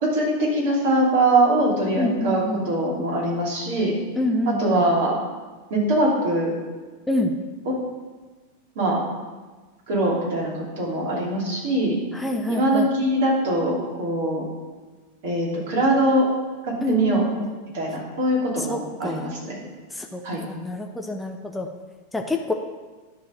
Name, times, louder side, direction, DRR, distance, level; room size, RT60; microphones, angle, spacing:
voice 1, 0.0-3.9 4.5-5.1 5.7-6.5 8.7-9.0 9.9-12.0 12.5-14.4 15.2-16.3 16.6-17.3 17.7-19.5 20.2-20.4, right 1 dB, 55° right, -3 dB, 2.9 m, -22 dB
voice 2, 2.0-2.7 4.2-4.8 7.1-7.3 12.1-12.9 16.8-17.5 18.6-19.3 19.9-20.2 20.5-21.7 22.1-22.5, left 1 dB, 5° left, 2 dB, 0.7 m, -26 dB
11.0 x 4.1 x 6.5 m, 1.3 s
figure-of-eight pair, 90°, 0 cm